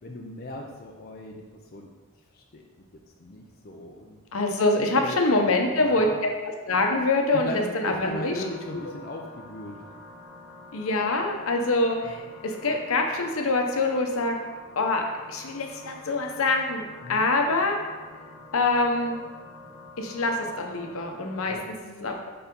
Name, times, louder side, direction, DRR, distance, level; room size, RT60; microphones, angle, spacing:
voice 1, 0.0-1.4 1.7-1.9 2.3-2.6 3.2-4.2 4.8-5.2 5.7-6.2 7.3-9.8 12.0-12.2 17.0-17.3 21.5-21.7, left 2 dB, 45° left, 0 dB, 0.5 m, -38 dB
voice 2, 4.3-6.1 6.7-8.4 8.7-8.8 10.7-14.4 14.8-15.0 15.3-16.8 17.1-17.8 18.5-19.2 20.0-22.3, left 2 dB, 75° left, 3 dB, 0.8 m, -25 dB
sound 1, 8.0-21.6, left 2 dB, 40° right, 1.8 m, -47 dB
4.5 x 4.2 x 5.2 m, 1.3 s
head